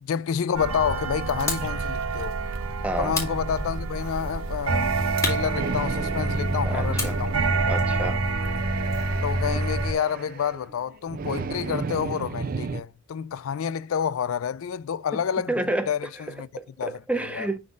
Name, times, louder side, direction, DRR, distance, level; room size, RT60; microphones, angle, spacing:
voice 1, 0.0-2.4 3.0-7.4 9.2-15.5 15.9-16.5 16.8-17.0 17.3-17.5, left 7 dB, 75° left, 0.4 m, -29 dB
sound 1, 0.5-9.9, right 3 dB, 80° right, 0.9 m, -27 dB
sound 2, 1.5-1.8 3.1-4.1 5.2-6.3 7.0-9.2, left 3 dB, 15° left, 2.1 m, -34 dB
voice 2, 2.8-3.2 6.6-7.2 7.7-8.2 15.5-15.9 16.6-17.6, right 1 dB, 5° right, 0.7 m, -29 dB
sound 3, 5.5-12.8, right 4 dB, 40° right, 0.3 m, -34 dB
11.0 x 3.8 x 2.4 m
head